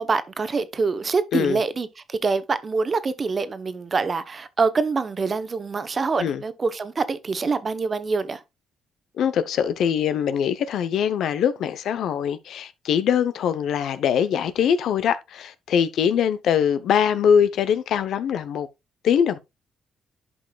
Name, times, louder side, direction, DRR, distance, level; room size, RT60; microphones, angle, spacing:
voice 1, 0.0-8.4, right 4 dB, 35° right, 1.0 m, -25 dB
voice 2, 9.2-18.7 19.0-19.4, left 8 dB, 75° left, 0.8 m, -22 dB
11.0 x 5.4 x 2.3 m
cardioid pair, 90°, 0 cm